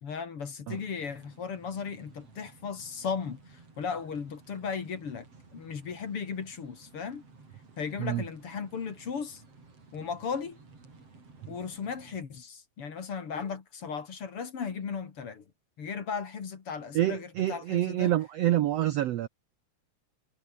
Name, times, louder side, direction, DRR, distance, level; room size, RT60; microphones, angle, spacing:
voice 1, 0.0-5.3 5.5-7.2 7.8-9.4 9.9-10.6 11.5-15.4 15.8-18.1, left 6 dB, 45° left, 3.0 m, -36 dB
sound 1, 0.7-12.2, right 3 dB, 45° right, 6.6 m, -55 dB
voice 2, 16.9-19.3, right 13 dB, 75° right, 1.5 m, -27 dB
omnidirectional pair, 3.8 m